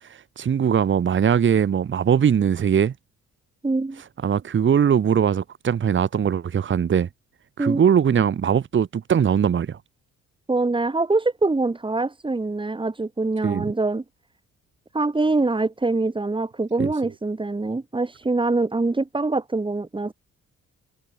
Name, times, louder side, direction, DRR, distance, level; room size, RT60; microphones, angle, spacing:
voice 1, 0.4-2.9 4.2-7.1 7.6-9.8 13.4-13.7 16.8-16.9, right 8 dB, 40° right, 1.2 m, -20 dB
voice 2, 3.6-4.0 7.6-7.8 10.5-14.0 14.9-20.1, right 3 dB, 15° right, 2.8 m, -24 dB
cardioid pair, 90°, 30 cm